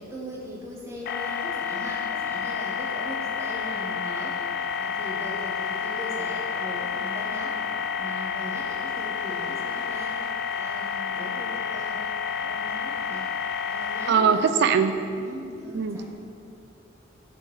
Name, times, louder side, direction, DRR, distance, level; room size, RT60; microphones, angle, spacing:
voice 1, 0.0-4.5 4.8-7.6 8.0-10.3 10.6-12.0 12.4-13.3 13.7-14.4 15.2-16.0, equal, 15° right, -4 dB, 1.1 m, -39 dB
sound 1, 1.1-14.1, left 6 dB, 50° left, 0.4 m, -30 dB
voice 2, 14.1-15.0 15.7-16.0, right 6 dB, 55° right, 9 dB, 0.4 m, -21 dB
6.3 x 3.9 x 6.2 m, 2.5 s
head